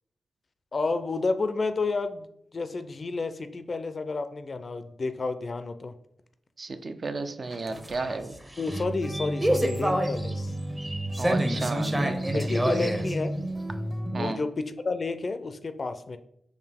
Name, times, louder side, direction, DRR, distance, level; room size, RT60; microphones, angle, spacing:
voice 1, 0.7-2.3 2.5-5.9 8.6-10.5 12.3-13.3 14.1-16.2, left 3 dB, 50° left, 10 dB, 0.4 m, -30 dB
voice 2, 6.6-8.4 11.2-12.7 14.1-14.4, right 3 dB, 55° right, 9 dB, 0.4 m, -33 dB
sound 1, 7.4-14.3, right 1 dB, 20° right, 0.7 m, -28 dB
4.6 x 2.7 x 3.5 m, 0.73 s
cardioid pair, 50°, 0 cm